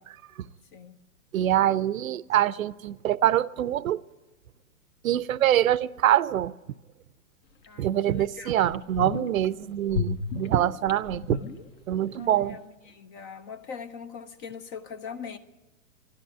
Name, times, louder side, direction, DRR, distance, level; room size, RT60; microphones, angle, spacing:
voice 1, 1.3-4.0 5.0-6.5 7.8-11.4 11.9-12.6, right 12 dB, 70° right, 19 dB, 0.6 m, -24 dB
sound 1, 7.6-7.7 8.2-8.3 8.7-9.5 9.9-12.2 12.4-12.5, left 6 dB, 45° left, 1.4 m, -33 dB
voice 2, 7.7-8.8 12.2-15.4, left 6 dB, 20° left, 13 dB, 0.5 m, -41 dB
12.5 x 12.5 x 9.2 m, 1.1 s
hypercardioid pair, 125°, 43 cm